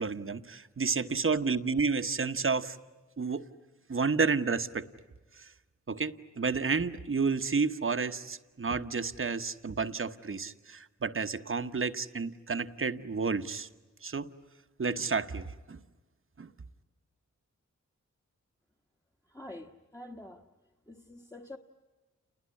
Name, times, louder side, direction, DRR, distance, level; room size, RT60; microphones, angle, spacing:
voice 1, 0.0-2.8 3.2-3.5 3.9-4.9 5.4-5.5 5.9-13.7 14.0-14.3 14.8-15.8 16.4-16.5, right 4 dB, 45° right, 10 dB, 1.1 m, -31 dB
voice 2, 19.3-20.4 20.9-21.6, left 1 dB, 10° left, 1 dB, 1.4 m, -46 dB
29.0 x 20.5 x 9.7 m, 1.2 s
cardioid pair, 60°, 30 cm